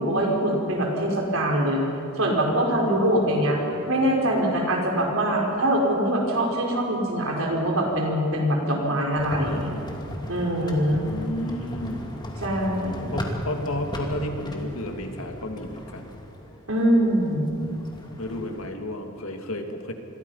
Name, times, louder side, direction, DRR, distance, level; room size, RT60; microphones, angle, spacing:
voice 1, 0.0-1.8 2.2-3.6 3.9-9.7 10.3-11.1 12.4-13.1 16.7-17.5, right 1 dB, 70° right, -1 dB, 4.9 m, -23 dB
voice 2, 2.9-3.8 10.9-12.1 13.1-16.1 18.2-19.9, left 1 dB, 75° left, 4 dB, 2.4 m, -32 dB
sound 1, 9.1-18.7, equal, 20° left, 2.6 m, -37 dB
27.5 x 22.5 x 5.7 m, 2.6 s
head